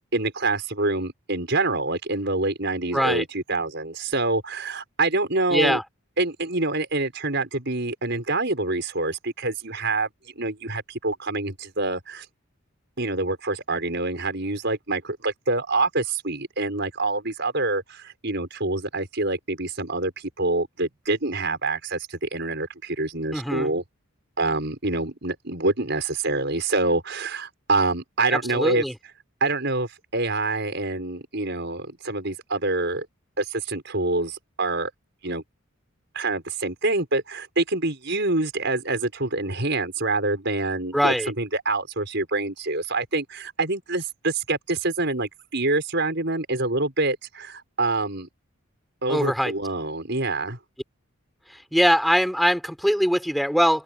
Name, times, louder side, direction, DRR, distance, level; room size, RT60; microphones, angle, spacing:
voice 1, 0.0-5.8 6.2-10.1 10.4-12.3 13.0-23.8 24.4-28.8 29.4-33.1 33.4-34.9 35.2-35.4 36.1-48.3 49.0-50.6, right 2 dB, 50° right, 6.3 m, -26 dB
voice 2, 2.9-3.2 5.5-5.8 23.3-23.7 28.3-28.9 40.9-41.3 49.1-49.5 51.5-53.8, equal, ahead, 6.6 m, -22 dB
open air
head